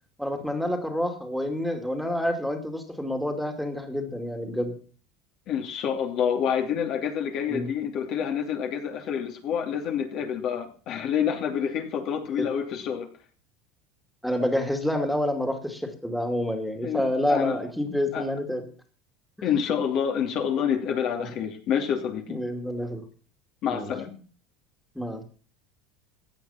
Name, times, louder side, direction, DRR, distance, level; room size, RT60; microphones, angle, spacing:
voice 1, 0.2-4.7 7.5-7.7 12.4-12.5 14.2-18.6 21.2-21.3 22.3-23.0 23.7-23.9 25.0-25.2, left 1 dB, ahead, 5 dB, 2.4 m, -28 dB
voice 2, 5.5-13.1 16.8-17.0 17.3-17.6 18.1-18.2 19.4-22.4 23.6-24.2, left 8 dB, 55° left, 5 dB, 2.7 m, -27 dB
15.5 x 8.6 x 5.7 m, 0.40 s
supercardioid pair, 110°, 0 cm